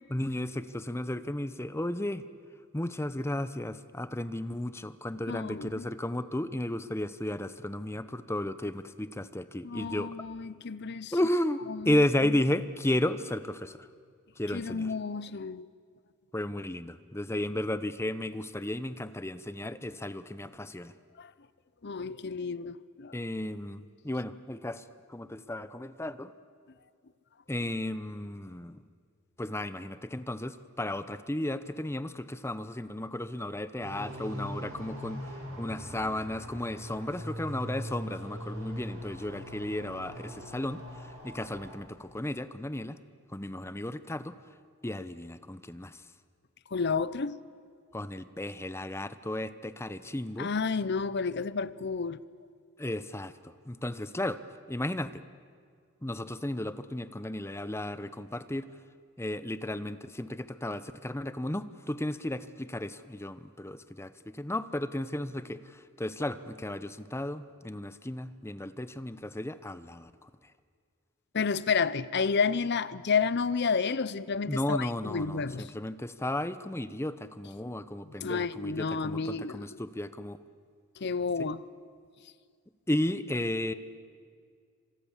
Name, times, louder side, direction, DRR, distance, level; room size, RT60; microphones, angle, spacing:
voice 1, 0.1-2.3 2.7-10.1 11.1-13.9 14.4-14.9 16.3-20.9 23.1-26.3 27.5-28.8 29.4-43.0 43.3-44.4 44.8-46.0 47.9-50.5 52.8-54.4 54.7-55.2 56.0-58.7 59.2-70.3 74.5-80.4 81.4-81.5 82.9-83.7, left 1 dB, 10° left, 0.8 m, -34 dB
voice 2, 5.3-5.9 9.6-11.1 11.7-11.9 14.5-15.7 21.2-21.3 21.8-23.1 46.7-47.4 50.4-52.2 71.3-75.7 78.2-79.7 81.0-81.6, left 5 dB, 55° left, 0.8 m, -31 dB
sound 1, 33.8-41.7, equal, 90° right, 7.9 m, -41 dB
28.0 x 26.0 x 7.3 m
head